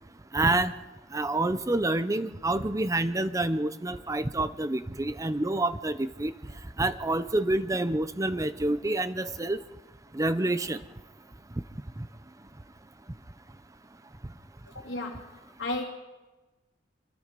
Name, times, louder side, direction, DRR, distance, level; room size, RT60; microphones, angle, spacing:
voice 1, 0.3-0.7 1.1-6.3 6.8-9.6 10.1-10.8, right 2 dB, 20° right, 12 dB, 0.7 m, -27 dB
voice 2, 14.7-15.9, left 2 dB, 85° left, -2 dB, 2.7 m, -34 dB
26.0 x 23.0 x 5.2 m, 1.2 s
head